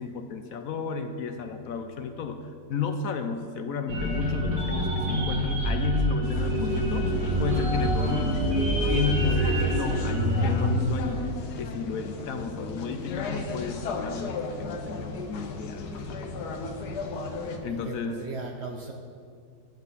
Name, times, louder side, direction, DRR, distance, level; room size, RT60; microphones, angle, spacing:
voice 1, 0.0-7.1 7.4-8.5 8.9-11.2 11.6-16.5 17.6-18.2, left 5 dB, 65° left, 7 dB, 1.0 m, -32 dB
sound 1, 3.9-10.6, right 1 dB, 85° right, 2.7 m, -26 dB
sound 2, 6.2-17.6, left 3 dB, 85° left, 1.4 m, -36 dB
voice 2, 17.7-18.9, right 4 dB, 55° right, 2 dB, 0.8 m, -37 dB
10.5 x 7.7 x 4.0 m, 2.2 s
omnidirectional pair, 1.7 m